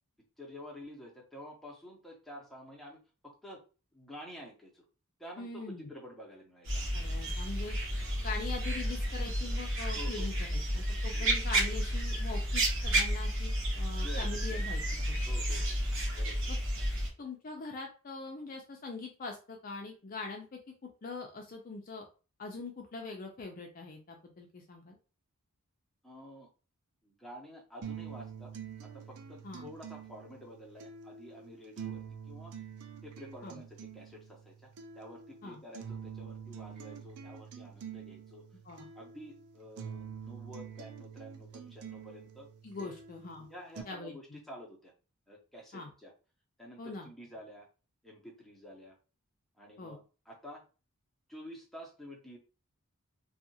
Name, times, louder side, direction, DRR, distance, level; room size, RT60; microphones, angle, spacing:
voice 1, 0.4-3.0 3.2-3.6 3.9-4.8 5.2-7.0 8.0-8.2 9.9-10.3 11.0-11.3 14.0-14.6 15.2-16.6 26.0-26.5 27.0-28.5 28.8-32.5 33.0-34.7 34.9-38.4 38.9-42.5 42.7-42.9 43.5-44.9 45.3-46.1 46.6-47.7 48.0-49.0 49.6-50.7 51.3-52.4, equal, ahead, -2 dB, 0.8 m, -50 dB
voice 2, 5.4-5.9 6.9-7.8 8.2-15.2 15.6-15.7 16.5-16.6 17.2-20.6 21.0-22.0 22.4-25.0 29.4-29.7 33.4-33.6 35.4-35.6 38.6-38.9 42.6-43.5 43.9-44.4 45.7-45.9 46.8-47.1 49.8-50.0, left 3 dB, 40° left, 2 dB, 0.4 m, -42 dB
sound 1, 6.6-17.1, right 1 dB, 60° right, 1.0 m, -31 dB
sound 2, 27.8-43.8, right 7 dB, 85° right, 0.5 m, -46 dB
2.7 x 2.4 x 2.7 m, 0.34 s
head